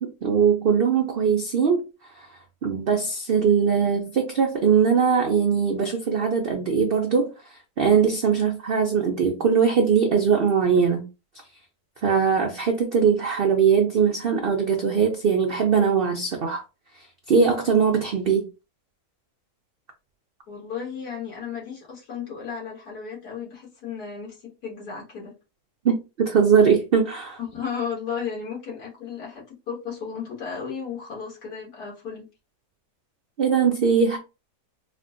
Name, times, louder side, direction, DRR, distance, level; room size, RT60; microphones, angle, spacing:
voice 1, 0.0-1.8 2.2-2.3 2.6-7.3 7.8-11.1 12.0-16.6 17.3-18.5 25.8-27.4 33.4-34.2, right 6 dB, 80° right, 0.5 m, -21 dB
voice 2, 20.5-25.4 27.4-32.3, left 6 dB, 75° left, 2.1 m, -34 dB
4.3 x 2.1 x 2.5 m
omnidirectional pair, 1.7 m